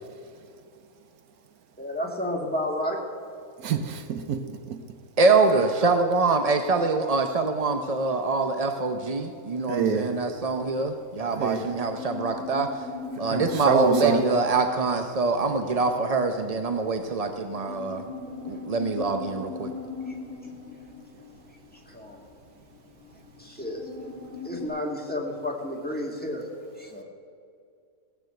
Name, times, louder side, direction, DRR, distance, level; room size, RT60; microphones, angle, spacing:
voice 1, 1.8-3.0 20.1-20.2 21.9-22.3 23.4-23.9 24.4-26.5 26.8-27.0, left 1 dB, 5° left, -1 dB, 1.8 m, -31 dB
voice 2, 3.6-4.4 4.7-4.8 9.7-10.1 11.4-11.6 13.3-14.2, right 6 dB, 70° right, 9 dB, 1.2 m, -26 dB
voice 3, 5.2-12.7 13.2-18.0 18.5-19.7, right 3 dB, 50° right, 6 dB, 0.4 m, -24 dB
sound 1, 10.2-24.7, left 5 dB, 55° left, 3.2 m, -41 dB
17.0 x 7.4 x 7.8 m, 2.4 s
omnidirectional pair, 1.7 m